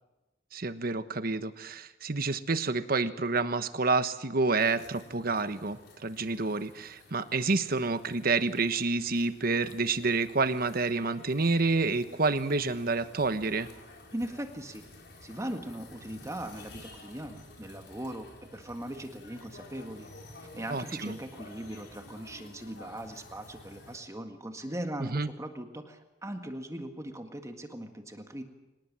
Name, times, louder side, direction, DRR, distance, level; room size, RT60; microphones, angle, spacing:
voice 1, 0.5-13.7 20.7-21.2 25.0-25.3, right 3 dB, 55° right, 11 dB, 1.2 m, -29 dB
sound 1, 4.6-24.0, left 2 dB, 60° left, 4.8 m, -52 dB
voice 2, 14.1-14.8 15.2-20.1 20.5-28.4, right 1 dB, 15° right, 5 dB, 1.8 m, -39 dB
24.5 x 19.5 x 7.6 m, 1.0 s
head